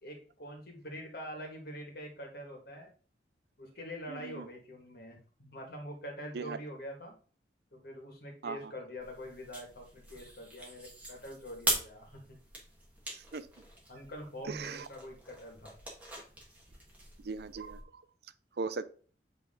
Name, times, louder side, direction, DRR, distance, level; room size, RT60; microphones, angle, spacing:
voice 1, 0.0-2.9 3.6-7.1 7.7-12.4 13.9-15.7, equal, 60° left, 2 dB, 1.8 m, -45 dB
voice 2, 4.1-4.5 6.3-6.6 8.4-8.6 13.1-13.5 14.5-14.8 17.2-17.8 18.6-18.8, right 4 dB, 65° right, 14 dB, 0.5 m, -38 dB
sound 1, 9.0-17.8, right 1 dB, 10° right, 1.6 m, -41 dB
8.2 x 3.4 x 3.7 m, 0.41 s
head